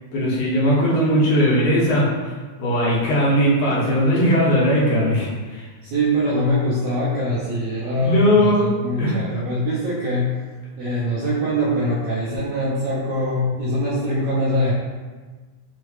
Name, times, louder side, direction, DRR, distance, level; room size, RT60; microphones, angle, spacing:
voice 1, 0.1-2.1 2.6-5.7 7.9-8.7 9.0-9.2, equal, 85° left, -6 dB, 2.6 m, -18 dB
voice 2, 5.8-10.3 10.8-14.7, equal, 70° right, -8 dB, 1.8 m, -23 dB
6.2 x 2.3 x 3.2 m, 1.4 s
omnidirectional pair, 3.3 m